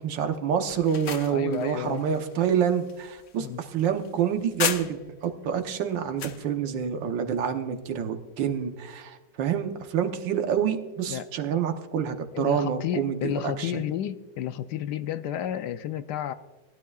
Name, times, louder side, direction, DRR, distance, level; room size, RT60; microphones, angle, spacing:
voice 1, 0.0-13.8, right 8 dB, 90° right, 6 dB, 1.7 m, -27 dB
sound 1, 0.7-5.3 5.7-6.4, left 7 dB, 55° left, 0.7 m, -35 dB
voice 2, 1.3-2.0 3.4-3.6 11.1-11.3 12.3-16.3, left 10 dB, 75° left, 11 dB, 1.1 m, -31 dB
19.5 x 12.0 x 2.3 m, 1.3 s
omnidirectional pair, 1.9 m